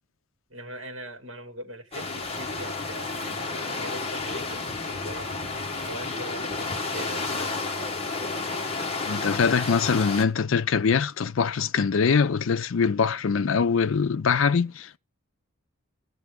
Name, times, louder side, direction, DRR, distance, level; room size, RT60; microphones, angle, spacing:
voice 1, 0.5-7.5 13.7-13.8, right 1 dB, 60° right, 2.4 m, -41 dB
sound 1, 1.9-10.2, left 3 dB, 30° left, 1.1 m, -31 dB
voice 2, 9.1-15.0, left 5 dB, 65° left, 0.4 m, -23 dB
15.0 x 6.6 x 3.6 m
head